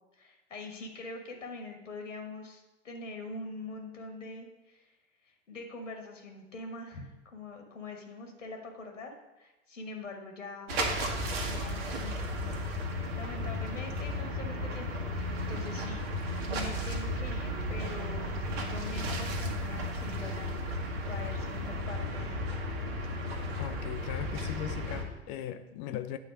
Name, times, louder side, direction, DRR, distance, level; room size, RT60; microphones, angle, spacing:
voice 1, 0.2-5.0 5.2-10.8 11.4-12.6 13.1-16.1 16.5-18.3 18.7-20.7 21.0-22.6, left 2 dB, 80° left, 3 dB, 1.5 m, -44 dB
sound 1, 10.7-25.1, left 1 dB, 55° right, 1.6 m, -34 dB
voice 2, 23.6-26.2, left 11 dB, 35° left, 10 dB, 0.6 m, -38 dB
9.4 x 4.1 x 6.3 m, 1.0 s
figure-of-eight pair, 90°, 37 cm